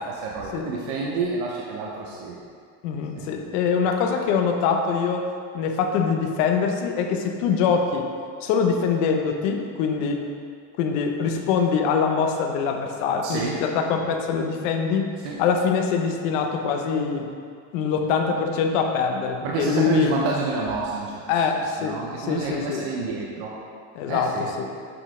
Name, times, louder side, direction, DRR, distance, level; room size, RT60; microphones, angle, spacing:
voice 1, 0.1-2.4 3.1-3.4 13.2-13.6 15.2-15.4 19.4-23.5 24.1-24.5, right 4 dB, 60° right, -2 dB, 0.7 m, -29 dB
voice 2, 2.8-5.2 5.5-8.1 8.4-10.2 10.8-15.1 15.4-17.3 17.7-20.1 21.3-22.8 23.9-24.7, left 6 dB, 65° left, 4 dB, 0.8 m, -23 dB
7.8 x 4.0 x 3.7 m, 2.2 s
cardioid pair, 180°, 40 cm